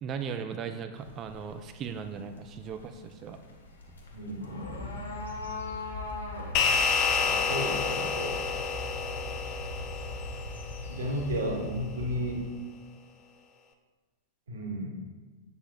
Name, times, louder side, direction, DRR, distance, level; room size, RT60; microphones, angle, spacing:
voice 1, 0.0-3.4, right 6 dB, 30° right, 8 dB, 0.4 m, -37 dB
sound 1, 1.0-11.4, left 3 dB, 70° left, 1.0 m, -44 dB
voice 2, 4.1-5.0 7.2-8.3 10.9-12.5 14.5-14.9, equal, 65° right, 0 dB, 1.2 m, -34 dB
sound 2, 4.6-12.4, left 2 dB, 90° left, 1.5 m, -41 dB
sound 3, 6.5-11.2, left 5 dB, 40° left, 0.6 m, -29 dB
7.7 x 6.8 x 2.3 m, 1.3 s
figure-of-eight pair, 90°, 0 cm